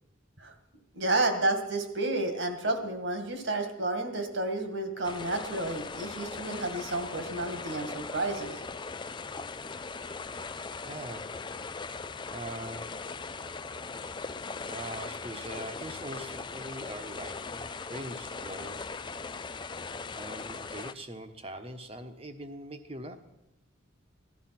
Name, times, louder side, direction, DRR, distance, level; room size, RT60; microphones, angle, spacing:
voice 1, 0.9-8.6, right 2 dB, 60° right, 6 dB, 2.1 m, -31 dB
sound 1, 5.0-20.9, left 4 dB, 20° left, 0.4 m, -39 dB
voice 2, 10.8-11.4 11.6-11.8 12.3-13.0 14.7-18.9 20.1-23.2, right 1 dB, 30° right, 7 dB, 1.2 m, -42 dB
16.5 x 12.0 x 6.0 m, 0.95 s
head